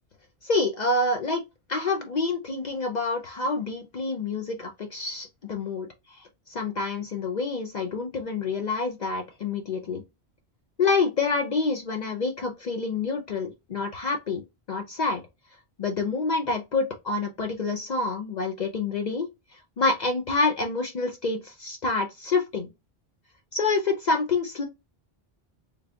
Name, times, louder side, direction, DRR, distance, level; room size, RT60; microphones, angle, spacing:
voice 1, 0.4-1.4 1.7-10.0 10.8-14.4 14.7-15.2 15.8-19.3 19.8-22.7 23.5-24.7, left 3 dB, 50° left, 0.6 m, -27 dB
3.4 x 2.3 x 3.5 m
omnidirectional pair, 1.1 m